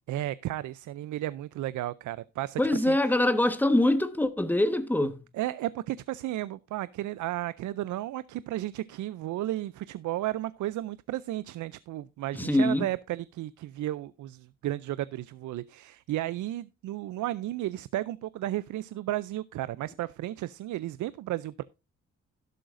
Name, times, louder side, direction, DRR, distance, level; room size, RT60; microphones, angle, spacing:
voice 1, 0.1-3.0 5.3-21.6, right 14 dB, 80° right, 0.5 m, -33 dB
voice 2, 2.6-5.1 12.3-12.9, left 1 dB, 5° left, 1.3 m, -24 dB
12.0 x 11.5 x 2.5 m
cardioid pair, 85°, 29 cm